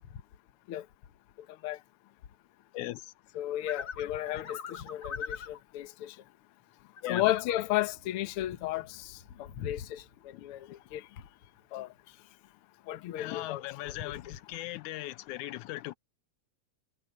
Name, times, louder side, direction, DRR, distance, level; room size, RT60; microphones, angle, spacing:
voice 1, 2.7-3.1 7.0-7.3 9.6-9.7 10.3-10.5 13.2-15.9, left 17 dB, 85° left, 2.0 m, -39 dB
voice 2, 3.3-6.1 7.1-10.0 10.4-11.0 11.7-11.9 12.9-13.9, left 14 dB, 65° left, 1.5 m, -33 dB
sound 1, 3.7-5.6 7.0-7.5, left 5 dB, 35° left, 2.1 m, -40 dB
Motorcycle, 7.1-12.3, equal, 25° right, 5.0 m, -62 dB
omnidirectional pair, 3.5 m